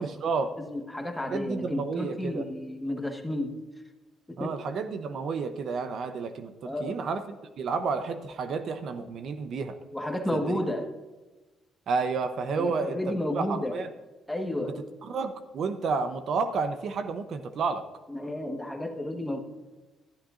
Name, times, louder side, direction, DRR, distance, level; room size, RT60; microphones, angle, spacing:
voice 1, 0.0-0.5 1.3-2.4 4.4-9.8 10.3-10.6 11.9-13.9 15.0-17.8, right 4 dB, 60° right, 9 dB, 0.8 m, -31 dB
voice 2, 0.6-3.6 4.3-4.5 6.6-7.0 9.9-10.9 12.6-13.8 14.3-14.8 18.1-19.4, left 1 dB, 5° left, 3 dB, 1.3 m, -32 dB
13.0 x 12.5 x 2.5 m, 1.2 s
cardioid pair, 95°, 0 cm